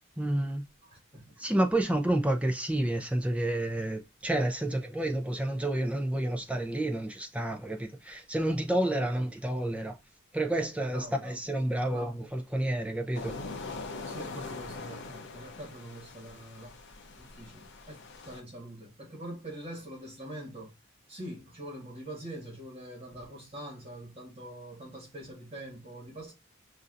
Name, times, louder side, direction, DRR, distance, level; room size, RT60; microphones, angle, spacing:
voice 1, 0.2-0.6 1.4-10.0 10.3-13.4, right 1 dB, 5° right, 0.5 m, -30 dB
voice 2, 0.9-1.4 10.9-11.5 11.9-12.2 14.1-16.7 17.2-20.7 21.1-26.3, right 1 dB, 25° right, 1.6 m, -44 dB
sound 1, 13.1-18.4, left 3 dB, 55° left, 0.6 m, -42 dB
5.3 x 2.6 x 2.5 m
head